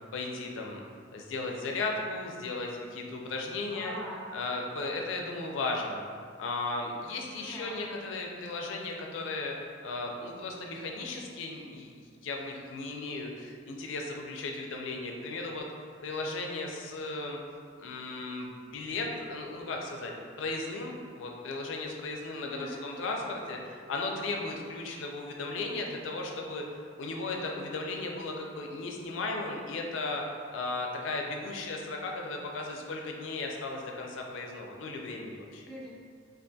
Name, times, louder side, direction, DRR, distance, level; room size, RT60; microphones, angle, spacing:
voice 1, 0.1-0.8 1.1-3.9 4.3-6.0 6.4-9.5 9.8-15.7 16.0-17.4 17.8-26.6 27.0-30.2 30.5-35.6, left 3 dB, 85° left, 1 dB, 0.4 m, -36 dB
voice 2, 3.7-4.3 7.4-7.8 22.4-22.8 35.7-35.9, equal, 5° left, -7 dB, 0.3 m, -42 dB
2.4 x 2.3 x 2.6 m, 2.1 s
head